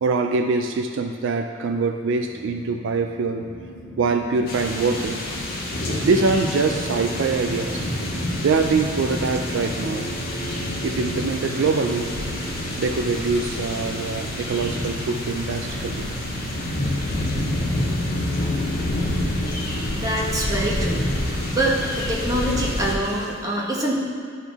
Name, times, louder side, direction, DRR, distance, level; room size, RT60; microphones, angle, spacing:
voice 1, 0.0-3.4 4.0-5.2 6.0-7.8 8.4-10.1 10.8-12.1 12.8-16.1, right 4 dB, 70° right, 5 dB, 0.4 m, -23 dB
sound 1, 2.3-16.9, right 1 dB, 30° left, 0.6 m, -40 dB
sound 2, 3.4-22.2, left 1 dB, 85° left, 0.5 m, -36 dB
sound 3, 4.5-22.9, left 1 dB, 50° left, 1.5 m, -28 dB
voice 2, 19.9-21.1 21.5-24.0, right 1 dB, 20° right, -4 dB, 1.2 m, -25 dB
11.5 x 4.0 x 3.5 m, 2.2 s
head